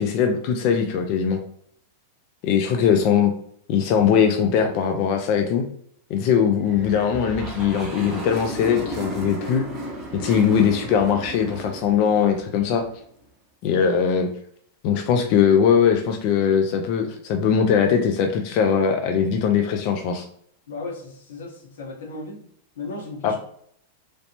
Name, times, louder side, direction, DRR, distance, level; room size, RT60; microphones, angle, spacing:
voice 1, 0.0-1.4 2.4-3.3 3.7-5.7 6.1-9.6 10.1-12.8 13.6-14.3 14.8-20.2 23.2-23.3, left 7 dB, 40° left, 4 dB, 0.3 m, -20 dB
sound 1, 6.6-13.0, right 1 dB, 10° right, 0.8 m, -34 dB
voice 2, 20.7-22.4 22.7-23.4, left 3 dB, 85° left, 2 dB, 0.9 m, -35 dB
3.2 x 2.7 x 2.8 m, 0.66 s
supercardioid pair, 170°, 0 cm